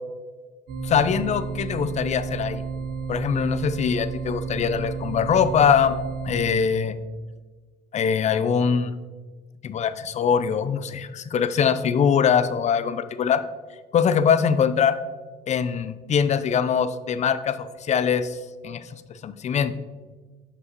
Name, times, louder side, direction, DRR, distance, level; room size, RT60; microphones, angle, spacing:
sound 1, 0.7-6.5, right 5 dB, 65° right, 0.9 m, -32 dB
voice 1, 0.8-2.6 3.1-5.9 6.2-7.0 7.9-8.9 9.6-13.4 13.9-15.0 15.5-19.7, left 7 dB, 40° left, 12 dB, 0.5 m, -22 dB
7.9 x 6.0 x 3.0 m, 1.3 s
cardioid pair, 110°, 17 cm